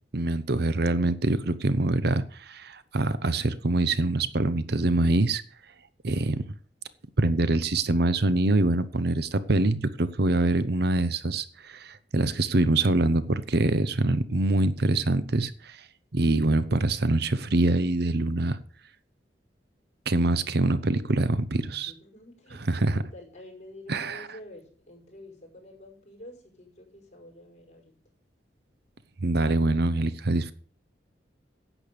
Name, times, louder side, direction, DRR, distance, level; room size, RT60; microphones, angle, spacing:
voice 1, 0.1-5.4 6.0-6.4 7.2-15.8 16.1-18.6 20.1-21.9 22.7-23.0 23.9-24.3 29.2-30.5, right 2 dB, 65° right, 14 dB, 0.9 m, -24 dB
voice 2, 21.5-28.0, left 1 dB, 40° left, 0 dB, 5.5 m, -48 dB
11.0 x 8.5 x 6.8 m, 0.43 s
head